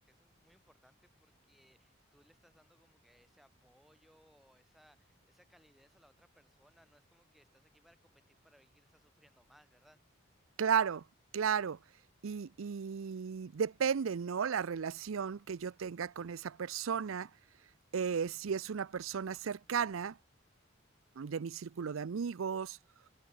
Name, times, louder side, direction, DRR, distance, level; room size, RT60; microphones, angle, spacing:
voice 1, 0.0-10.0, equal, ahead, 3.0 m, -67 dB
voice 2, 10.6-11.0 11.3-11.8 12.2-17.3 17.9-20.2 21.2-22.8, right 7 dB, 85° right, 0.5 m, -34 dB
head